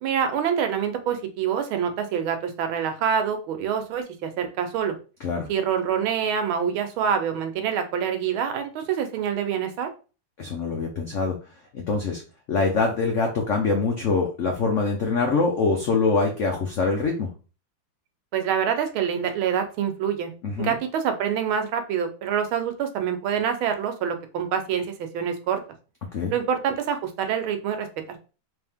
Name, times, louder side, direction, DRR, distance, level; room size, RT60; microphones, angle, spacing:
voice 1, 0.0-4.9 5.5-9.9 18.3-20.3 20.6-25.6 26.3-28.2, right 8 dB, 85° right, 7 dB, 1.6 m, -26 dB
voice 2, 10.4-11.4 11.7-12.2 12.5-17.3 20.4-20.7 26.1-26.3, left 4 dB, 80° left, 2 dB, 0.6 m, -24 dB
3.4 x 3.2 x 3.5 m, 0.34 s
omnidirectional pair, 2.2 m